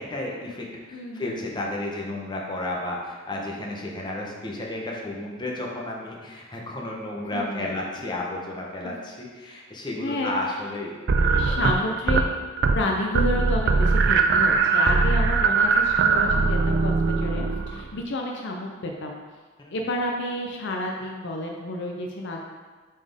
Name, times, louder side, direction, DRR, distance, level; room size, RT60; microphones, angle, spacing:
voice 1, 0.0-11.6 19.6-19.7, left 1 dB, 20° left, -2 dB, 0.9 m, -32 dB
voice 2, 0.9-1.4 7.3-7.8 8.8-8.9 9.5-9.6 10.0-10.3 11.3-12.2 12.7-19.2 19.7-22.4, left 1 dB, 60° left, 1 dB, 0.6 m, -30 dB
sound 1, 11.1-12.3 12.6-12.9 13.1-17.9, right 4 dB, 55° right, 0.4 m, -21 dB
7.2 x 4.3 x 3.5 m, 1.4 s
head